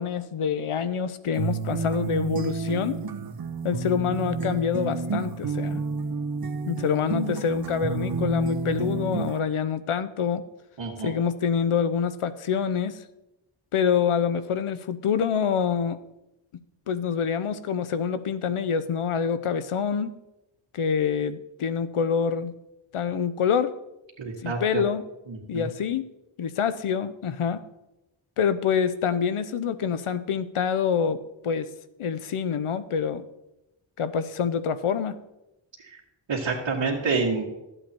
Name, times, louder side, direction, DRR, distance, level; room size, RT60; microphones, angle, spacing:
voice 1, 0.0-3.0 3.6-5.8 6.7-10.5 11.0-13.0 13.7-16.0 16.9-20.2 20.7-22.5 22.9-23.7 24.4-25.0 25.5-26.0 26.4-27.6 28.4-31.2 31.4-31.7 32.0-33.2 34.0-35.2, left 7 dB, 85° left, 14 dB, 0.8 m, -26 dB
sound 1, 1.4-9.4, right 4 dB, 45° right, 0.7 m, -30 dB
voice 2, 10.8-11.1 24.2-24.8 25.3-25.7 35.8-36.0 36.3-37.4, right 4 dB, 65° right, -4 dB, 1.9 m, -28 dB
13.0 x 8.0 x 4.5 m, 0.93 s
wide cardioid pair, 80°, 49 cm